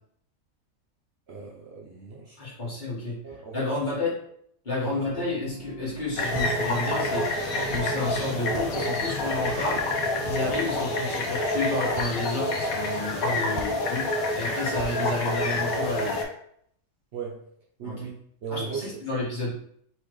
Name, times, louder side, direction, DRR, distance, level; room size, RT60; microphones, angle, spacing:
voice 1, 1.3-2.7 3.2-3.9 4.8-5.0 13.5-13.6 17.1-17.4 17.8-18.9, right 5 dB, 55° right, -3 dB, 0.9 m, -38 dB
voice 2, 2.4-3.2 3.5-4.1 4.6-7.3 7.7-9.8 10.2-14.0 14.3-16.2 17.8-18.0 18.5-19.5, left 2 dB, 35° left, -7 dB, 1.7 m, -30 dB
sound 1, 4.8-10.8, right 1 dB, 60° left, 1.1 m, -42 dB
sound 2, 6.2-16.2, left 2 dB, 80° left, 1.3 m, -28 dB
sound 3, 6.3-16.2, right 4 dB, 75° right, 0.5 m, -42 dB
4.3 x 3.4 x 3.1 m, 0.67 s
omnidirectional pair, 1.5 m